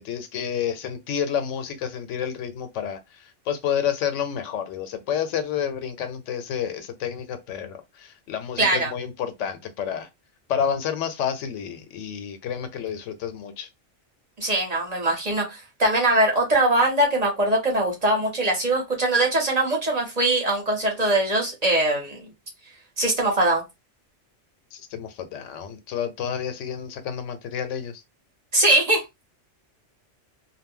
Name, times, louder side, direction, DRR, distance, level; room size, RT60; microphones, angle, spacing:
voice 1, 0.0-10.1 10.5-13.7 24.7-28.0, left 8 dB, 85° left, 0.9 m, -30 dB
voice 2, 8.6-8.9 14.4-22.3 23.0-23.6 28.5-29.0, right 1 dB, 40° right, 0.8 m, -22 dB
2.1 x 2.1 x 3.5 m
omnidirectional pair, 1.2 m